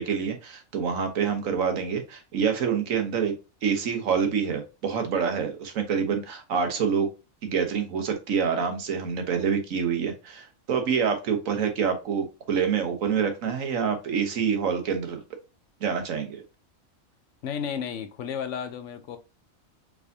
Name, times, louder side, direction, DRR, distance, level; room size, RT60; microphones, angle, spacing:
voice 1, 0.0-3.3 3.6-7.1 7.4-15.2 15.8-16.4, right 6 dB, 70° right, 1.3 m, -26 dB
voice 2, 17.4-19.2, left 7 dB, 65° left, 0.9 m, -33 dB
4.8 x 3.5 x 2.6 m
omnidirectional pair, 1.5 m